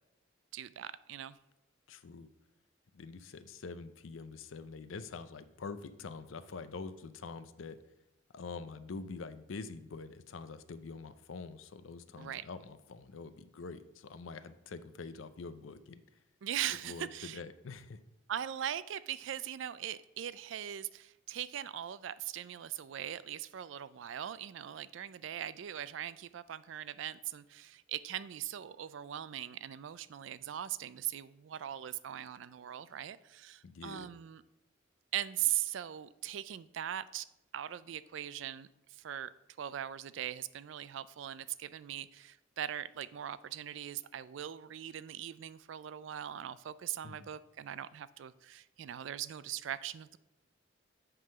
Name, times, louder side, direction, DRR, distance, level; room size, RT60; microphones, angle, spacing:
voice 1, 0.5-1.4 12.2-12.4 16.4-17.4 18.3-34.4 35.1-37.3 37.5-50.2, right 11 dB, 70° right, 17 dB, 0.3 m, -40 dB
voice 2, 1.9-2.3 2.9-7.8 8.3-16.0 16.8-18.0 33.6-34.1 47.0-47.3, left 4 dB, 85° left, 13 dB, 0.5 m, -45 dB
7.8 x 3.8 x 6.6 m, 0.90 s
head